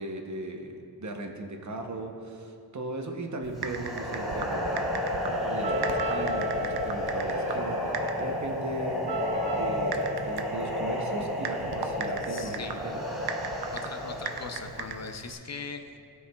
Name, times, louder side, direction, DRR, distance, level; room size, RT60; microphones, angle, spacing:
voice 1, 0.0-9.0 9.5-13.0, right 2 dB, 50° right, 3 dB, 0.8 m, -38 dB
Typing, 3.4-15.3, right 5 dB, 90° right, 0.5 m, -39 dB
sound 1, 3.6-14.7, left 1 dB, ahead, 1.6 m, -32 dB
sound 2, 5.6-11.4, equal, 25° right, 1.5 m, -36 dB
voice 2, 12.3-12.8 13.7-15.8, left 5 dB, 45° left, 6 dB, 0.5 m, -40 dB
13.5 x 4.7 x 2.3 m, 2.5 s
wide cardioid pair, 70°, 37 cm